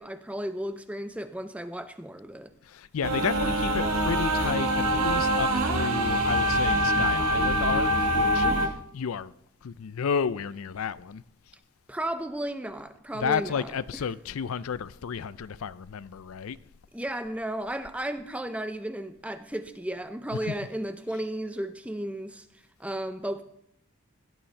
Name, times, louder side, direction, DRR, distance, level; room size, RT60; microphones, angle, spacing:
voice 1, 0.0-2.5 8.4-8.8 11.9-13.8 16.9-22.5 22.8-23.4, right 1 dB, 5° right, 0.5 m, -34 dB
voice 2, 2.7-8.5 8.9-9.3 9.6-11.2 13.1-16.6, left 6 dB, 80° left, 0.4 m, -32 dB
sound 1, 3.0-8.7, right 1 dB, 90° right, 1.4 m, -24 dB
16.5 x 11.5 x 3.3 m
head